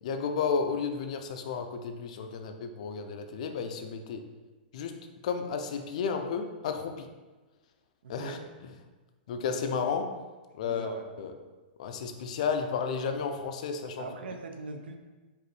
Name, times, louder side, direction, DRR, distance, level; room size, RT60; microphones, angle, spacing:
voice 1, 0.0-4.2 4.7-4.9 5.2-7.1 8.1-8.7 9.3-10.1 10.5-11.3 11.8-14.1, left 5 dB, 45° left, 6 dB, 0.4 m, -32 dB
voice 2, 8.0-8.4 10.6-11.1 14.0-15.0, right 4 dB, 85° right, 5 dB, 0.6 m, -41 dB
4.9 x 2.6 x 3.0 m, 1.3 s
hypercardioid pair, 175°, 5 cm